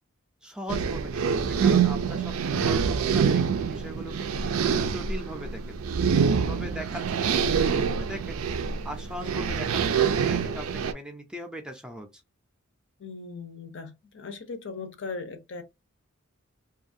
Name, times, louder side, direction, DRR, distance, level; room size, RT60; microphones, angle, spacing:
voice 1, 0.4-5.8 6.2-12.2, equal, 5° right, 0.4 m, -40 dB
sound 1, 0.7-10.9, right 6 dB, 80° right, 0.4 m, -25 dB
voice 2, 2.5-2.9 6.7-6.8 13.0-15.6, left 4 dB, 60° left, 0.6 m, -38 dB
2.6 x 2.3 x 2.6 m
head